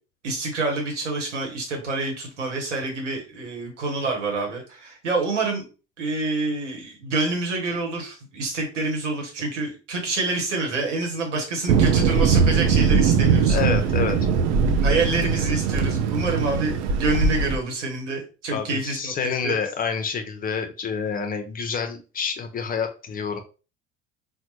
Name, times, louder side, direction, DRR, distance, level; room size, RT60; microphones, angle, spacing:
voice 1, 0.2-5.7 6.0-13.6 14.8-19.6, right 3 dB, 80° right, 1 dB, 1.1 m, -27 dB
Thunder, 11.7-17.6, right 6 dB, 65° right, 0.6 m, -20 dB
voice 2, 13.4-14.2 18.5-23.4, left 6 dB, 25° left, 7 dB, 0.4 m, -28 dB
4.0 x 2.1 x 2.9 m, 0.34 s
figure-of-eight pair, 65°, 36 cm